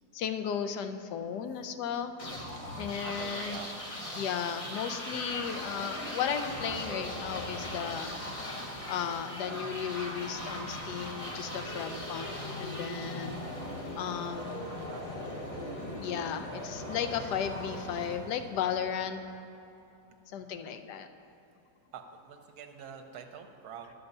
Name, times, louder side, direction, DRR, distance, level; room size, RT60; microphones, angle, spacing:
voice 1, 0.1-2.1 2.8-3.6 4.1-8.1 8.9-13.4 13.9-14.7 16.0-19.2 20.3-21.1, left 8 dB, 80° left, 8 dB, 1.2 m, -35 dB
sound 1, 2.2-18.9, left 1 dB, 30° left, 0.8 m, -39 dB
voice 2, 2.9-3.8 14.8-15.4 21.9-23.9, right 7 dB, 70° right, 5 dB, 1.2 m, -46 dB
10.5 x 7.0 x 5.4 m, 2.9 s
omnidirectional pair, 1.8 m